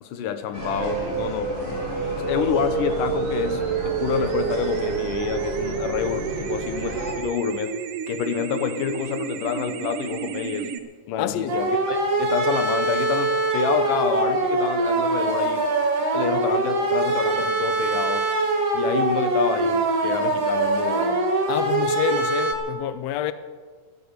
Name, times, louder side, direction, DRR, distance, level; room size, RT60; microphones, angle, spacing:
voice 1, 0.0-1.6 2.2-7.8 8.1-10.7 11.1-15.7 16.1-18.3 18.7-21.3, left 8 dB, 90° left, 2.7 m, -28 dB
sound 1, 0.5-7.1, equal, 15° left, 4.0 m, -33 dB
sound 2, 0.8-10.8, right 7 dB, 85° right, 2.6 m, -29 dB
voice 2, 11.2-11.6 21.5-23.3, left 12 dB, 75° left, 1.7 m, -27 dB
sound 3, 11.5-22.5, right 2 dB, 50° right, 3.0 m, -23 dB
14.5 x 14.5 x 6.6 m
omnidirectional pair, 3.6 m